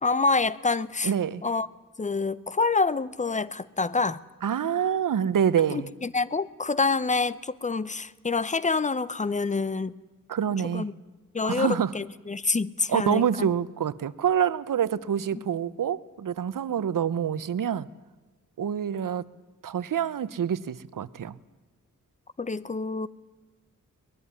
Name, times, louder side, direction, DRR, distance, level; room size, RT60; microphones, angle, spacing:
voice 1, 0.0-1.1 1.4-1.7 2.0-4.2 5.7-10.0 10.7-10.9 11.3-13.5 15.3-15.4 22.4-23.1, left 4 dB, 20° left, 18 dB, 0.7 m, -27 dB
voice 2, 1.0-1.4 4.4-5.9 10.3-10.9 11.4-11.9 12.9-17.9 18.6-19.3 19.6-21.4, right 8 dB, 75° right, 17 dB, 0.9 m, -26 dB
22.5 x 20.5 x 9.6 m, 1.2 s
wide cardioid pair, 140°, 33 cm